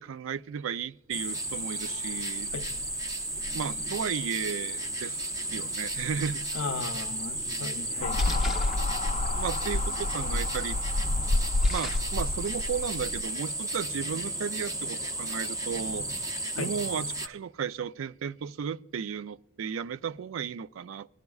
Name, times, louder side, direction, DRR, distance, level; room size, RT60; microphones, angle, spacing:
voice 1, 0.0-2.5 3.5-6.4 8.0-8.2 9.3-10.8 11.7-16.1 16.6-21.1, right 7 dB, 80° right, 0.4 m, -34 dB
sound 1, 1.1-17.3, right 1 dB, 15° right, 0.5 m, -34 dB
voice 2, 6.5-8.2 16.6-16.7, left 4 dB, 90° left, 0.6 m, -36 dB
Splash splatter, 7.4-12.5, left 1 dB, ahead, 0.9 m, -45 dB
sound 2, 8.0-13.2, left 2 dB, 35° left, 0.4 m, -29 dB
19.0 x 10.5 x 2.3 m
head